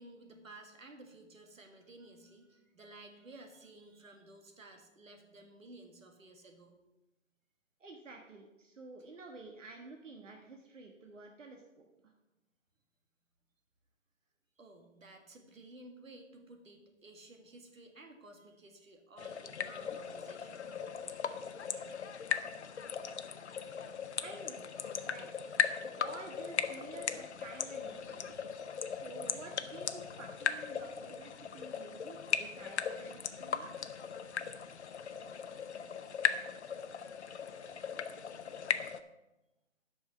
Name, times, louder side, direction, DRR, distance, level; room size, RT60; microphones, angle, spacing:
voice 1, 0.0-6.8 14.6-20.6 25.7-26.0, right 2 dB, 90° right, 4 dB, 1.8 m, -55 dB
voice 2, 7.8-12.1 24.2-24.6 25.0-25.3 26.0-28.4 28.9-33.7, right 3 dB, 70° right, 2 dB, 1.4 m, -50 dB
sound 1, 19.2-39.0, left 7 dB, 60° left, 0.7 m, -38 dB
9.4 x 5.6 x 6.0 m, 0.98 s
hypercardioid pair, 165°, 39 cm